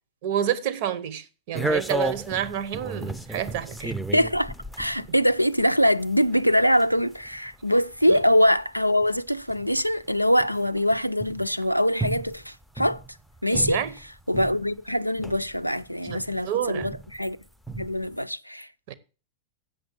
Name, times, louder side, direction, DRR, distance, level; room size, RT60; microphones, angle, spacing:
voice 1, 0.2-3.9 13.5-13.9 16.1-16.9 18.9-19.0, right 10 dB, 50° right, 0.9 m, -29 dB
sound 1, 1.5-14.7 15.1-17.3 17.6-18.1, right 2 dB, 5° right, 0.6 m, -34 dB
voice 2, 3.8-13.0 13.4-13.8 14.3-17.4 17.8-18.7, equal, 90° left, 0.4 m, -23 dB
8.0 x 6.8 x 7.6 m
figure-of-eight pair, 90°, 0 cm